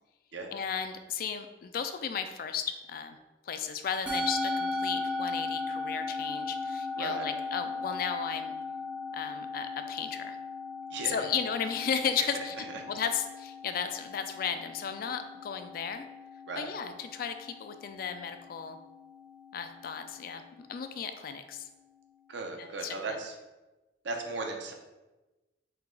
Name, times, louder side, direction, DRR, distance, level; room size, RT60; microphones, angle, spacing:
voice 1, 0.5-3.2 3.4-8.5 9.1-10.4 11.0-12.5 12.9-16.1 16.6-18.8 19.5-21.7 22.6-22.9, left 7 dB, 55° left, 8 dB, 0.3 m, -34 dB
Musical instrument, 4.1-22.6, left 3 dB, 5° right, 0.7 m, -38 dB
voice 2, 7.0-7.3 10.9-11.3 12.2-12.8 16.5-16.7 22.3-23.4 24.0-24.7, right 3 dB, 80° right, 2 dB, 0.6 m, -37 dB
4.5 x 2.3 x 3.7 m, 1.1 s
head